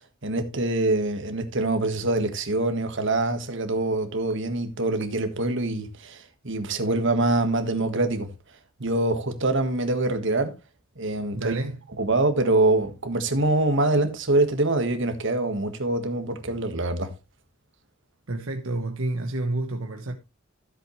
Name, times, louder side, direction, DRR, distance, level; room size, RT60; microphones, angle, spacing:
voice 1, 0.2-8.3 8.8-10.5 11.0-11.5 12.0-17.1, right 2 dB, 60° right, 1.6 m, -24 dB
voice 2, 11.3-11.8 18.3-20.1, right 2 dB, 80° right, 1.2 m, -29 dB
14.0 x 7.8 x 3.2 m
head